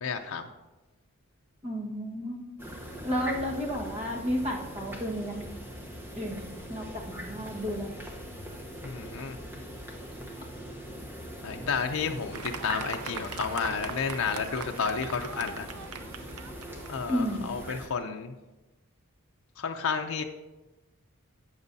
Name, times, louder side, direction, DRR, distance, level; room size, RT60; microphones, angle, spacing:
voice 1, 0.0-0.4 8.8-9.4 11.4-15.7 16.9-18.3 19.6-20.2, left 5 dB, 70° left, 4 dB, 0.5 m, -31 dB
voice 2, 1.6-2.4 3.0-5.4 6.1-8.0 17.1-17.5, equal, 30° right, -1 dB, 1.4 m, -32 dB
sound 1, 2.6-17.9, equal, 10° right, 0.9 m, -42 dB
Fireworks, 12.3-18.1, right 5 dB, 90° right, 0.7 m, -40 dB
12.0 x 8.0 x 2.7 m, 1.1 s
head